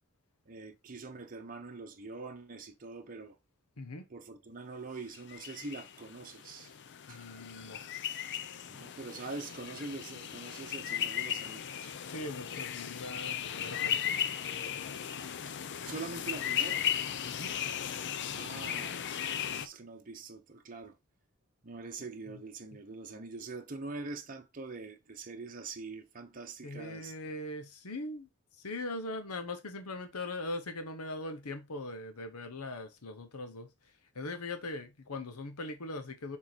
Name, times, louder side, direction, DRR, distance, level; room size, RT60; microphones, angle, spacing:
voice 1, 0.5-3.4 4.1-6.8 7.1-7.3 8.7-11.9 14.9-15.0 15.8-16.9 18.3-21.0 21.6-27.1, right 3 dB, 40° right, 0.8 m, -44 dB
voice 2, 3.8-4.1 7.1-7.8 12.1-14.2 17.2-17.5 18.5-18.7 22.3-22.4 26.6-28.3 28.6-33.7 34.1-36.4, left 2 dB, 85° left, 1.0 m, -41 dB
sound 1, 5.1-19.7, left 9 dB, 55° left, 0.5 m, -36 dB
6.5 x 3.9 x 4.4 m
head